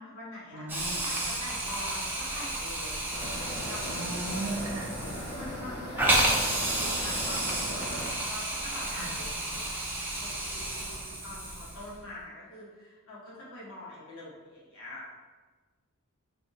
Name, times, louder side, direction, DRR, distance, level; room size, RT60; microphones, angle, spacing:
voice 1, 0.0-0.7 1.0-3.0 3.6-3.9 4.5-4.7 5.3-9.7 10.2-15.1, left 1 dB, 70° left, -7 dB, 1.4 m, -44 dB
voice 2, 0.5-1.0 3.9-4.9 8.9-9.1, right 2 dB, 85° right, 0 dB, 0.6 m, -36 dB
Hiss, 0.7-12.0, right 1 dB, 10° right, 0.5 m, -31 dB
sound 1, 3.1-8.1, equal, 45° left, 1.4 m, -38 dB
3.4 x 2.6 x 4.1 m, 1.3 s
head